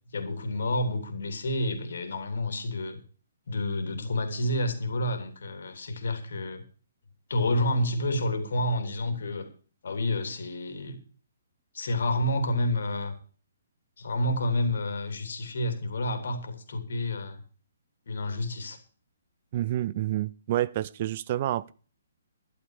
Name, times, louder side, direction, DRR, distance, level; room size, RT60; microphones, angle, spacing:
voice 1, 0.1-3.0 3.5-6.6 7.3-9.5 9.8-11.0 11.7-13.1 14.0-17.4 18.1-18.8, left 1 dB, 65° left, 3.2 m, -29 dB
voice 2, 19.5-21.7, right 13 dB, 40° right, 0.5 m, -28 dB
12.0 x 12.0 x 4.9 m
figure-of-eight pair, 135°, 0 cm